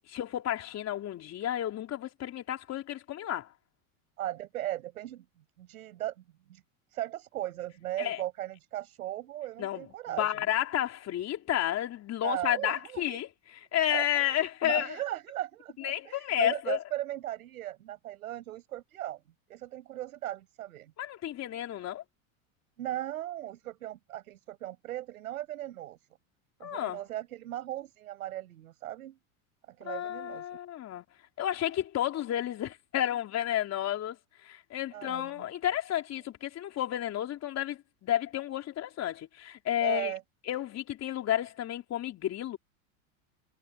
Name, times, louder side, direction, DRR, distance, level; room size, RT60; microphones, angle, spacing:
voice 1, 0.1-3.5 8.0-8.2 9.6-15.0 15.8-16.8 21.0-22.0 26.6-27.0 29.8-31.0 31.4-34.2 34.4-40.1 40.5-42.6, left 12 dB, 40° left, 3.7 m, -31 dB
voice 2, 4.2-5.3 5.6-6.2 6.5-6.6 6.9-10.3 12.2-13.2 13.9-19.2 19.5-20.9 22.8-26.0 26.6-29.2 29.7-30.5 34.9-35.4 39.8-40.2, right 13 dB, 85° right, 5.5 m, -37 dB
hypercardioid pair, 110°, 42 cm